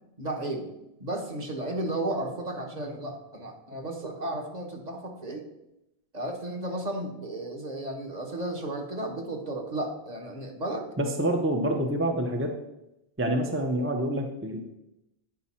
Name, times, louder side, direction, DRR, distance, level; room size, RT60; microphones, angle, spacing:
voice 1, 0.2-0.7 1.0-5.4 6.1-10.9, right 1 dB, 40° right, 1 dB, 1.2 m, -33 dB
voice 2, 11.0-12.6 13.2-14.7, right 1 dB, 15° right, 3 dB, 0.6 m, -27 dB
9.2 x 5.2 x 4.2 m, 0.89 s
omnidirectional pair, 1.1 m